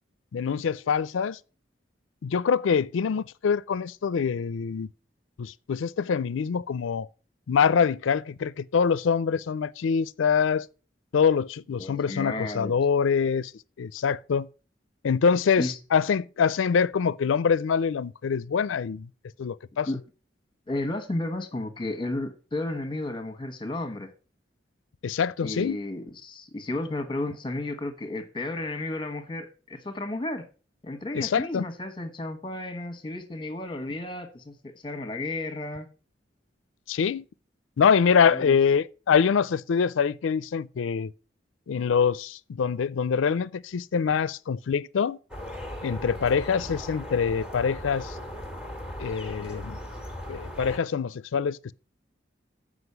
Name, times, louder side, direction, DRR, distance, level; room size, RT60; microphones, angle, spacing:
voice 1, 0.3-1.4 2.2-4.9 5.4-7.1 7.5-10.7 11.1-13.5 13.8-14.5 15.0-19.1 19.4-19.9 25.0-25.8 31.1-31.7 36.9-37.3 37.8-41.1 41.7-45.2 45.8-48.2 49.0-49.8 50.3-51.7, left 6 dB, 85° left, 0.4 m, -24 dB
voice 2, 11.8-12.7 15.6-15.8 19.8-20.0 20.7-24.1 25.4-30.5 30.8-35.9 38.3-38.6, left 2 dB, 25° left, 1.2 m, -33 dB
sound 1, 45.3-50.8, left 1 dB, 5° right, 1.5 m, -38 dB
8.0 x 5.1 x 6.7 m
head